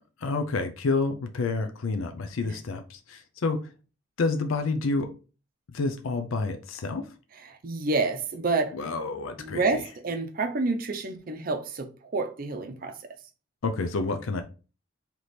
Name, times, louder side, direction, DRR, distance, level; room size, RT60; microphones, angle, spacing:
voice 1, 0.2-3.6 4.2-5.1 5.7-7.1 8.7-9.8 13.6-14.4, left 3 dB, 90° left, 0.5 m, -29 dB
voice 2, 7.4-8.8 9.4-13.0, right 3 dB, 45° right, 0.5 m, -29 dB
3.3 x 3.0 x 4.0 m
head